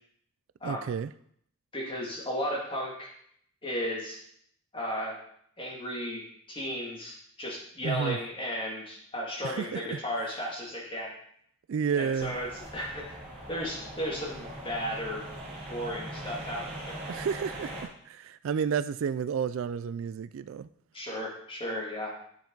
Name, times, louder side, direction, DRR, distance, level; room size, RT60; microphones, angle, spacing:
voice 1, 0.6-1.1 7.8-8.2 9.4-10.3 11.7-12.4 17.1-20.7, right 7 dB, 65° right, 15 dB, 0.3 m, -31 dB
voice 2, 1.7-3.1 3.6-4.2 4.7-5.2 5.6-6.2 6.5-11.1 11.9-13.2 13.5-15.2 15.7-17.0 20.9-22.1, equal, 25° left, -3 dB, 2.2 m, -34 dB
sound 1, 12.2-17.8, right 1 dB, 35° right, 3.6 m, -41 dB
9.2 x 7.1 x 3.9 m, 0.67 s
head